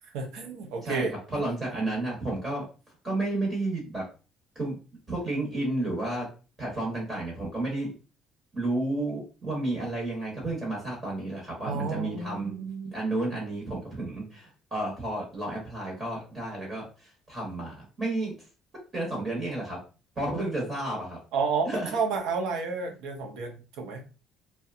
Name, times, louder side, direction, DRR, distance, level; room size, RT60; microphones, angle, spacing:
voice 1, 0.1-1.1 11.7-12.9 21.3-24.0, right 4 dB, 80° right, 3 dB, 0.6 m, -31 dB
voice 2, 0.8-2.7 3.0-4.0 4.5-4.7 5.1-6.3 6.6-7.9 8.5-12.5 12.9-18.3 18.9-19.8 20.2-21.2 21.7-22.0, right 2 dB, 25° right, -3 dB, 0.9 m, -31 dB
2.7 x 2.1 x 2.4 m, 0.33 s
cardioid pair, 170°, 0 cm